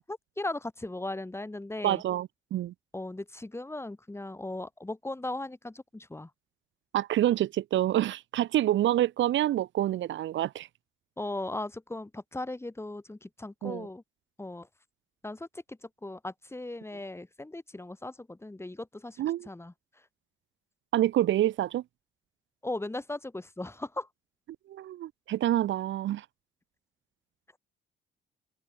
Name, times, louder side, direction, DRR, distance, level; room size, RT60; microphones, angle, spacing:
voice 1, 0.1-2.0 2.9-6.3 11.2-14.0 14.4-14.7 15.2-19.2 19.5-19.7 22.6-24.1, left 2 dB, 10° left, 5.6 m, -37 dB
voice 2, 1.8-2.7 6.9-10.7 13.6-13.9 19.2-19.5 20.9-21.8 24.7-26.2, right 13 dB, 70° right, 0.9 m, -27 dB
open air
cardioid pair, 90°, 20 cm